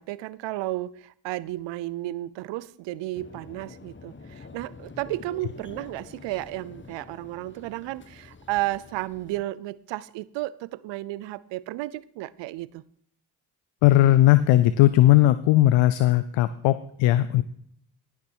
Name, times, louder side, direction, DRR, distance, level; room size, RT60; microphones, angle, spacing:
voice 1, 0.0-12.8, right 17 dB, 80° right, 19 dB, 0.6 m, -33 dB
sound 1, 3.1-9.4, left 4 dB, 25° left, 1.1 m, -47 dB
voice 2, 13.8-17.4, left 14 dB, 85° left, 14 dB, 0.6 m, -18 dB
16.5 x 6.0 x 4.5 m, 0.64 s
supercardioid pair, 45°, 44 cm